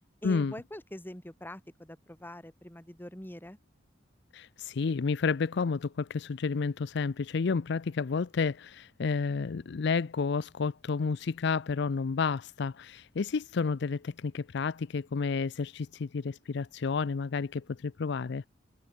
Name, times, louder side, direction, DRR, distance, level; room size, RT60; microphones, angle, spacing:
voice 1, 0.2-3.6, left 1 dB, 10° left, 2.3 m, -44 dB
voice 2, 4.3-18.4, left 5 dB, 65° left, 0.5 m, -31 dB
head